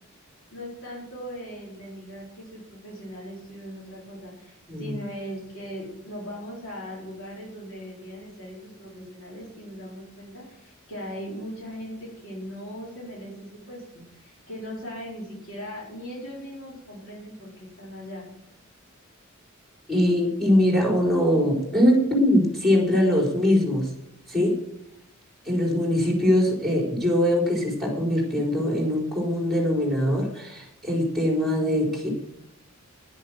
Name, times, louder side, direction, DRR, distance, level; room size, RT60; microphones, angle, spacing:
voice 1, 0.5-18.3, equal, 65° left, -5 dB, 4.8 m, -39 dB
voice 2, 19.9-23.9 24.3-24.6 25.4-32.1, left 1 dB, ahead, -1 dB, 4.4 m, -22 dB
10.5 x 10.0 x 7.7 m, 0.81 s
head